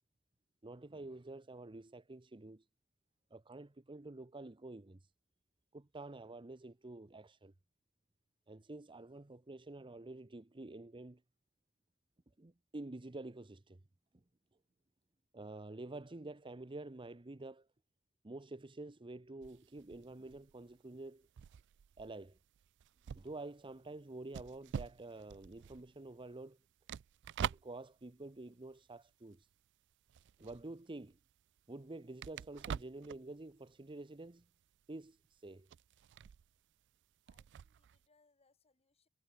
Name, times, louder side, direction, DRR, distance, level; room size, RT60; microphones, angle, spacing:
voice 1, 0.6-2.6 3.3-5.0 5.7-7.5 8.5-11.2 12.4-13.8 15.3-17.7 18.2-21.3 22.0-22.4 23.1-26.6 27.4-29.5 30.4-31.2 31.7-34.4 34.9-35.7, right 2 dB, 25° right, 0.8 m, -49 dB
sound 1, 19.4-29.7 29.9-38.1, right 8 dB, 55° right, 0.3 m, -47 dB
voice 2, 37.3-39.1, left 3 dB, 30° left, 2.7 m, -75 dB
head